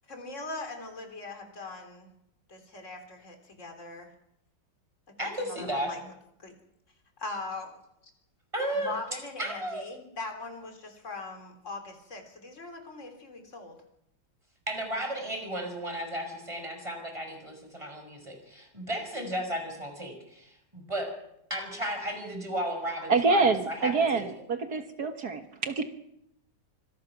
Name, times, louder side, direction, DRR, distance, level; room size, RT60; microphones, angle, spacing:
voice 1, 0.1-2.1 2.5-4.1 5.1-6.0 6.4-6.5 7.2-7.7 8.7-13.8, left 3 dB, 40° left, 4 dB, 3.8 m, -40 dB
voice 2, 5.2-5.9 8.5-9.0 9.4-9.9 14.7-21.1 21.5-23.4 23.7-24.2, right 1 dB, 15° right, 4 dB, 5.5 m, -34 dB
voice 3, 23.1-25.8, right 4 dB, 60° right, 7 dB, 1.9 m, -26 dB
25.5 x 20.0 x 6.0 m, 0.79 s
omnidirectional pair, 2.0 m